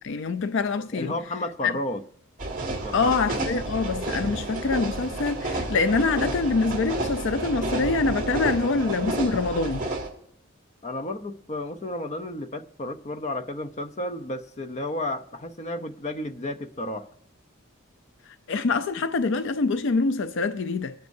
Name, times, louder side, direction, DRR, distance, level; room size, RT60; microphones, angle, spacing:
voice 1, 0.0-1.1 1.6-1.7 2.9-9.9 18.5-20.9, left 4 dB, 65° left, 0.5 m, -25 dB
voice 2, 0.9-2.0 2.8-3.4 10.8-17.1, left 1 dB, 35° left, 0.8 m, -32 dB
sound 1, 2.4-10.1, right 2 dB, 40° right, 2.1 m, -30 dB
24.0 x 9.4 x 2.7 m
head